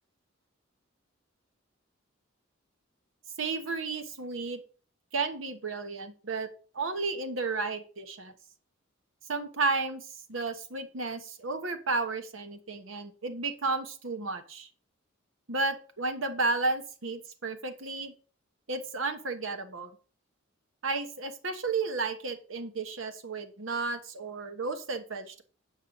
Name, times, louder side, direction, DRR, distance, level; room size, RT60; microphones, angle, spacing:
voice 1, 3.4-4.6 5.1-6.5 6.7-8.3 9.3-14.7 15.5-18.1 18.7-20.0 20.8-25.4, right 3 dB, 75° right, 9 dB, 1.2 m, -33 dB
8.9 x 5.5 x 5.3 m, 0.38 s
head